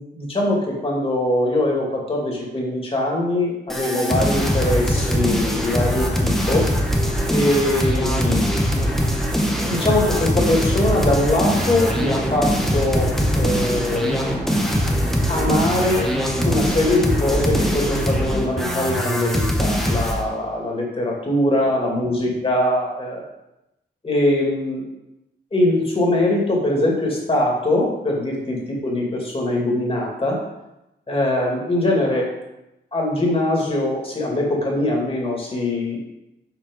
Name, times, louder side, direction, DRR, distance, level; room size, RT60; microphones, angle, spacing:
voice 1, 0.0-6.7 7.3-8.5 9.6-14.2 15.3-16.1 16.4-23.3 24.0-24.8 25.5-30.4 31.1-32.3 32.9-36.0, left 1 dB, 30° left, -2 dB, 2.5 m, -22 dB
sound 1, 3.7-20.2, equal, ahead, 1.1 m, -22 dB
sound 2, 4.3-18.4, right 2 dB, 30° right, 2.2 m, -30 dB
7.4 x 5.0 x 5.5 m, 0.91 s
wide cardioid pair, 110°, 19 cm